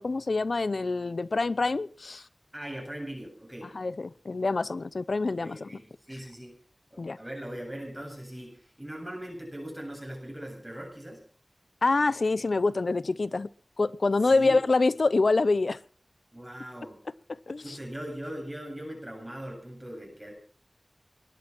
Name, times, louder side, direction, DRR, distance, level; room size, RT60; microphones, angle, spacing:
voice 1, 0.0-2.2 3.7-5.8 7.0-7.2 11.8-13.5 13.8-15.8 17.3-17.8, left 3 dB, 85° left, 18 dB, 0.7 m, -26 dB
voice 2, 2.5-3.8 5.4-6.6 6.9-11.2 14.2-14.6 16.3-17.0 17.6-20.3, right 1 dB, 15° right, 1 dB, 7.7 m, -40 dB
20.5 x 11.5 x 6.1 m, 0.43 s
wide cardioid pair, 65°, 0 cm